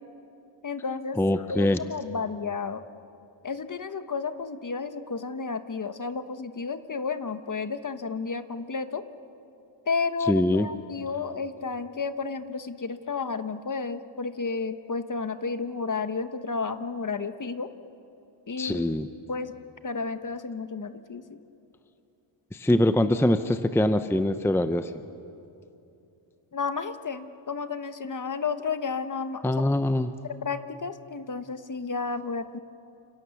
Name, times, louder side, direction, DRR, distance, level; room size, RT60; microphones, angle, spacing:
voice 1, 0.6-2.8 3.4-9.0 9.9-17.7 18.5-18.9 19.3-19.6 19.8-21.4 26.5-29.5 30.2-32.6, left 4 dB, 40° left, 10 dB, 1.1 m, -32 dB
voice 2, 1.2-1.8 10.3-10.7 18.6-19.1 22.5-24.9 29.4-30.1, left 1 dB, 5° left, 10 dB, 0.6 m, -23 dB
29.5 x 26.5 x 7.1 m, 2.7 s
wide cardioid pair, 135°, 50 cm